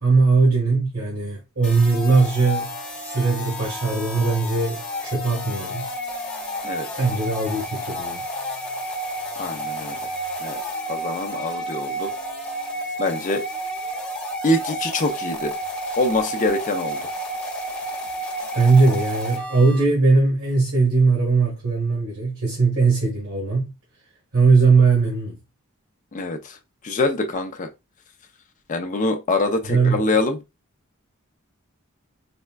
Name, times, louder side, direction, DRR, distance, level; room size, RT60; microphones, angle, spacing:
voice 1, 0.0-2.7 3.0-5.9 7.0-8.2 18.6-23.7 24.3-25.4 29.7-30.0, right 4 dB, 75° right, 1.6 m, -19 dB
sound 1, 1.6-19.8, right 1 dB, 5° left, 0.9 m, -31 dB
voice 2, 9.4-10.1 10.4-10.6 10.9-12.1 13.0-13.4 14.4-15.5 16.0-17.1 26.1-26.6 26.8-27.7 28.7-30.4, left 2 dB, 35° left, 0.5 m, -24 dB
4.2 x 2.2 x 2.3 m
head